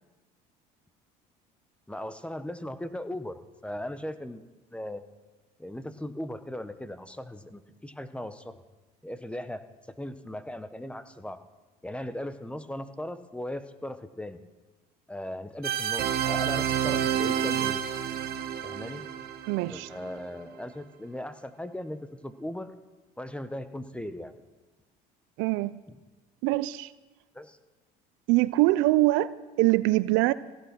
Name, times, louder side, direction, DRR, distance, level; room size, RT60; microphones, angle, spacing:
voice 1, 1.9-4.4 4.7-5.0 5.6-8.6 9.0-9.6 10.0-11.4 11.8-14.4 15.1-17.8 18.6-19.1 19.7-22.7 23.2-24.3 27.3-27.6, left 1 dB, 5° left, 0.9 m, -38 dB
sound 1, 15.6-20.3, right 9 dB, 50° right, 1.3 m, -29 dB
voice 2, 19.5-19.9 25.4-25.8 26.4-26.9 28.3-30.3, right 19 dB, 75° right, 0.5 m, -24 dB
16.0 x 8.8 x 6.0 m
supercardioid pair, 85°, 20 cm